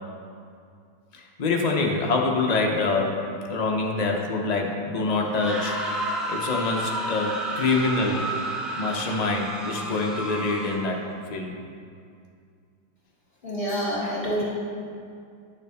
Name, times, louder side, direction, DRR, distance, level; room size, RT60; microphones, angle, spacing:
voice 1, 1.1-5.8 6.3-8.3 8.7-11.0 11.3-11.5, left 3 dB, 75° left, 0 dB, 0.3 m, -25 dB
sound 1, 5.2-11.0, right 1 dB, ahead, 0.5 m, -31 dB
voice 2, 13.4-14.4, equal, 30° left, -7 dB, 2.5 m, -27 dB
11.0 x 6.8 x 3.5 m, 2.3 s
omnidirectional pair, 2.0 m